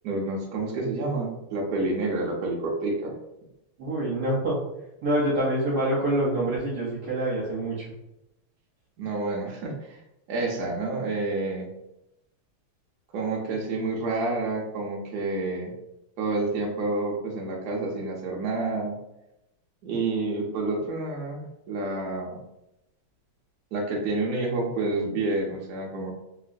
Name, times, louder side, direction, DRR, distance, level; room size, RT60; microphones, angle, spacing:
voice 1, 0.0-3.1 9.0-10.0 10.3-11.7 13.1-15.7 16.2-18.9 19.8-22.4 23.7-26.1, right 2 dB, 85° right, -2 dB, 0.8 m, -29 dB
voice 2, 3.8-4.6 5.0-7.9, right 1 dB, 60° right, -5 dB, 1.1 m, -26 dB
3.0 x 2.9 x 2.5 m, 0.88 s
omnidirectional pair, 2.4 m